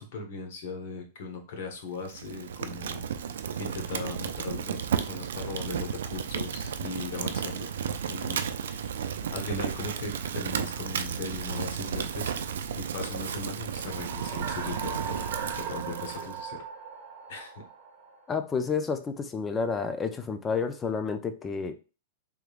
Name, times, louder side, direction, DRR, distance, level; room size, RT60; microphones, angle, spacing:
voice 1, 0.0-3.1 3.6-7.7 8.1-8.4 8.7-9.0 9.3-12.5 12.8-16.6 17.3-17.6, left 3 dB, 55° left, 3 dB, 1.1 m, -38 dB
Fire, 2.0-16.4, right 7 dB, 85° right, 0.4 m, -33 dB
sound 1, 13.6-18.3, right 6 dB, 40° right, 1.2 m, -38 dB
voice 2, 18.3-21.7, left 5 dB, 15° left, 8 dB, 0.4 m, -30 dB
3.5 x 3.2 x 2.4 m, 0.32 s
supercardioid pair, 160°, 0 cm